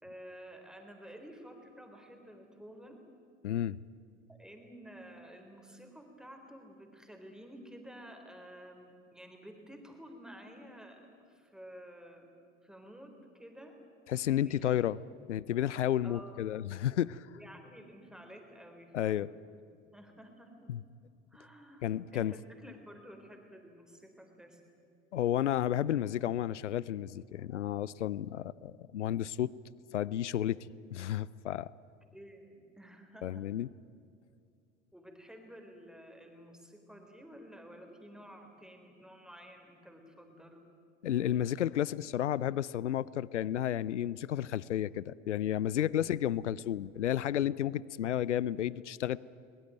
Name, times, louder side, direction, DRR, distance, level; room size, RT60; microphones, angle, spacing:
voice 1, 0.0-3.0 4.3-12.3 12.6-13.8 14.4-14.9 16.0-16.4 17.4-19.4 19.9-20.7 21.3-24.6 32.1-33.5 34.9-40.6 45.8-45.9, equal, ahead, 4 dB, 3.8 m, -52 dB
voice 2, 3.4-3.8 14.1-15.0 15.3-17.3 18.9-19.3 20.7-20.8 21.8-22.3 25.1-29.5 29.9-30.6 30.9-31.7 33.2-33.7 41.0-49.2, left 11 dB, 75° left, 22 dB, 0.5 m, -32 dB
22.0 x 21.0 x 9.2 m, 2.4 s
figure-of-eight pair, 75°, 36 cm